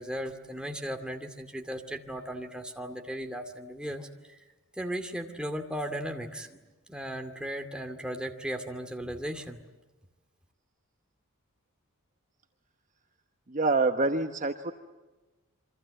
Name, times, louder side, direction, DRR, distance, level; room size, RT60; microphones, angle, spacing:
voice 1, 0.0-4.4 4.8-9.6, equal, 5° right, 4 dB, 2.3 m, -36 dB
voice 2, 13.5-14.7, right 3 dB, 35° right, 6 dB, 1.1 m, -26 dB
28.0 x 24.5 x 7.8 m, 1.2 s
head